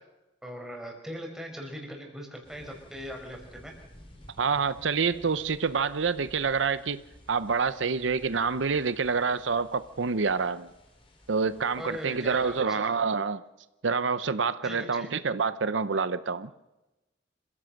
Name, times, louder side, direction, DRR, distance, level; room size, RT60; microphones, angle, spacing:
voice 1, 0.4-3.7 11.8-12.8 14.6-15.1, equal, 5° right, 1 dB, 4.8 m, -40 dB
sound 1, 2.4-12.6, equal, 30° left, 3.6 m, -54 dB
voice 2, 4.4-7.0 7.3-10.7 11.3-13.4 13.8-16.5, right 5 dB, 85° right, 13 dB, 0.7 m, -27 dB
26.5 x 16.0 x 6.5 m, 0.99 s
head